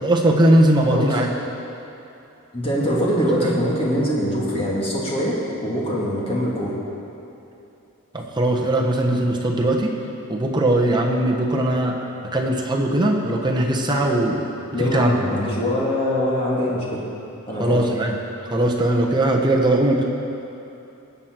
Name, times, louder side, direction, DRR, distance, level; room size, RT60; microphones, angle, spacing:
voice 1, 0.0-1.3 3.3-3.5 8.1-9.9 10.3-12.0 12.3-14.4 14.8-15.3 17.6-18.2 18.5-20.0, right 1 dB, 20° right, 0 dB, 1.1 m, -19 dB
voice 2, 2.5-5.3 5.6-6.7 14.7-17.0 17.5-17.8, equal, 25° left, -5 dB, 2.3 m, -23 dB
19.5 x 7.8 x 4.6 m, 2.9 s
head